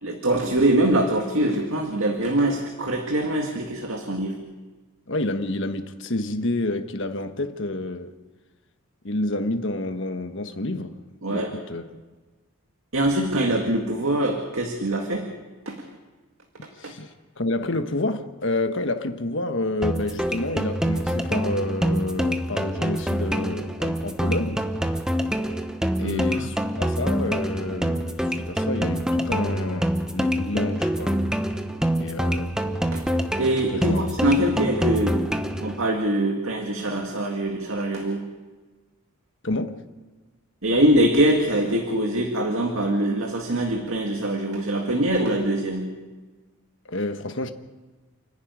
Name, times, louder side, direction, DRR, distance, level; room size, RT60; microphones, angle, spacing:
voice 1, 0.0-4.4 11.2-11.6 12.9-15.3 15.7-15.8 16.8-16.9 26.0-26.5 32.9-33.0 33.4-35.2 35.6-38.2 40.6-45.9, right 1 dB, 65° right, 2.1 m, -23 dB
voice 2, 5.1-8.1 9.0-11.0 11.3-12.0 16.8-17.1 17.4-24.7 26.0-31.2 32.0-32.5 33.8-34.5 39.4-39.8 46.9-47.5, left 2 dB, 55° left, 1.4 m, -29 dB
sound 1, 19.8-35.8, equal, 5° right, 0.9 m, -26 dB
29.0 x 11.5 x 9.7 m
head